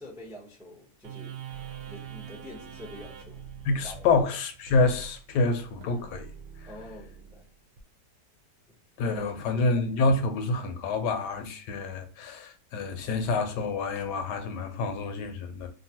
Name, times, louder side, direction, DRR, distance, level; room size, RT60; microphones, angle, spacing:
voice 1, 0.0-1.4 1.8-3.5 3.8-4.1 6.6-7.5 8.7-8.8 9.2-9.7, left 1 dB, 5° right, 0.3 m, -46 dB
sound 1, 1.0-7.8, right 8 dB, 70° right, 0.9 m, -44 dB
voice 2, 3.6-6.3 6.6-6.7 9.0-15.7, left 3 dB, 80° left, 1.2 m, -27 dB
2.9 x 2.5 x 2.7 m
omnidirectional pair, 1.8 m